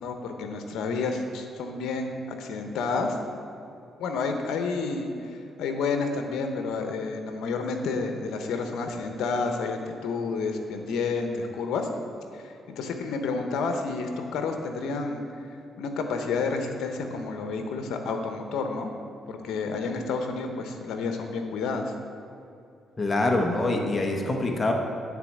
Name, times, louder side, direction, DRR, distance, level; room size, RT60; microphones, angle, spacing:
voice 1, 0.0-3.2 4.0-11.9 12.3-15.5 15.8-18.9 19.3-21.9, left 4 dB, 80° left, 5 dB, 0.9 m, -30 dB
voice 2, 23.0-24.7, left 2 dB, 30° left, 2 dB, 1.1 m, -25 dB
9.6 x 4.2 x 7.2 m, 2.7 s
cardioid pair, 90°, 0 cm